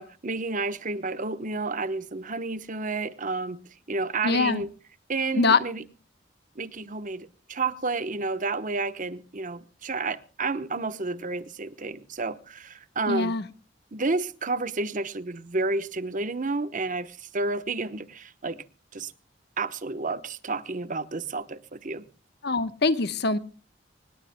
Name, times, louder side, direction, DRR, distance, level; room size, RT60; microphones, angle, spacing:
voice 1, 0.0-3.6 3.9-4.7 5.1-5.8 6.6-13.3 13.9-18.6 18.9-19.1 19.6-22.1, right 3 dB, 45° right, 1.0 m, -31 dB
voice 2, 4.2-4.6 5.3-5.6 13.1-13.4 22.4-23.4, left 4 dB, 65° left, 1.1 m, -23 dB
25.0 x 20.0 x 2.2 m
head